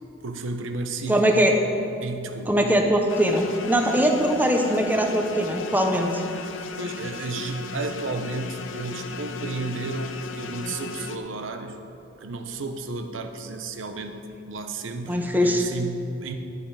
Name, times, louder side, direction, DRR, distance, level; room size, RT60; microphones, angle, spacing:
voice 1, 0.2-1.4 2.0-2.6 6.8-11.8 12.2-16.3, right 2 dB, 80° right, 6 dB, 0.8 m, -32 dB
voice 2, 1.1-1.5 2.5-6.2 15.1-15.7, equal, 10° right, 3 dB, 0.8 m, -21 dB
sound 1, 3.1-11.2, left 3 dB, 80° left, 0.7 m, -36 dB
10.5 x 9.1 x 4.8 m, 2.9 s
head